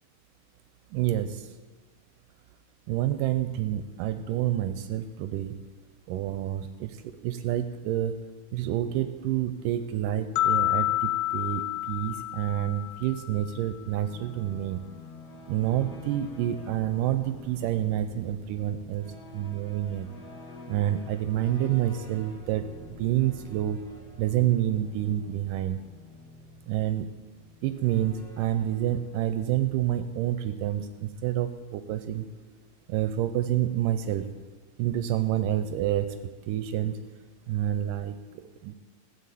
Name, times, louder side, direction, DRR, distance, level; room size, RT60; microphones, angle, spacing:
voice 1, 0.9-1.5 2.9-5.6 6.1-7.0 7.2-8.2 8.5-14.8 15.5-19.1 19.3-20.1 20.7-22.6 23.0-23.8 24.2-25.8 26.7-27.1 27.6-32.3 32.9-34.3 34.8-36.2 36.5-37.0 37.5-38.7, right 12 dB, 80° right, 10 dB, 2.1 m, -28 dB
sound 1, 10.4-13.5, left 14 dB, 80° left, 2.2 m, -28 dB
sound 2, 13.8-30.4, left 2 dB, 45° left, 1.4 m, -48 dB
15.5 x 7.0 x 8.3 m, 1.3 s
omnidirectional pair, 4.0 m